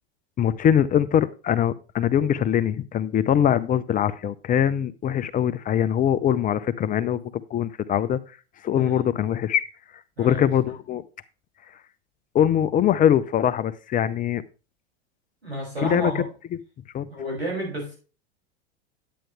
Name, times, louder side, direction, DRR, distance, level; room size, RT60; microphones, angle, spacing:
voice 1, 0.4-7.2 7.5-8.2 8.6-9.7 10.2-11.0 12.3-14.4 15.8-16.2 16.9-17.1, left 9 dB, 25° left, 0.6 m, -22 dB
voice 2, 15.4-16.2 17.1-18.0, right 1 dB, 85° right, 6.7 m, -31 dB
10.0 x 9.0 x 3.3 m
hypercardioid pair, 90°, 31 cm